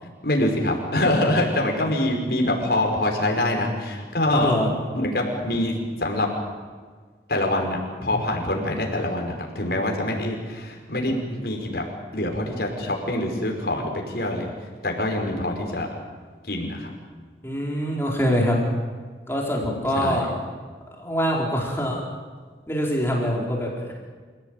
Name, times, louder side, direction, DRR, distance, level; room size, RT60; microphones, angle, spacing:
voice 1, 0.0-4.6 4.9-6.3 7.3-11.8 12.1-15.9 16.4-16.9 19.9-20.3, left 1 dB, 65° left, 1 dB, 5.5 m, -25 dB
voice 2, 17.4-18.6 19.3-20.3 21.0-22.0 22.7-23.9, equal, 15° left, -2 dB, 4.6 m, -24 dB
29.0 x 17.0 x 9.2 m, 1.5 s
head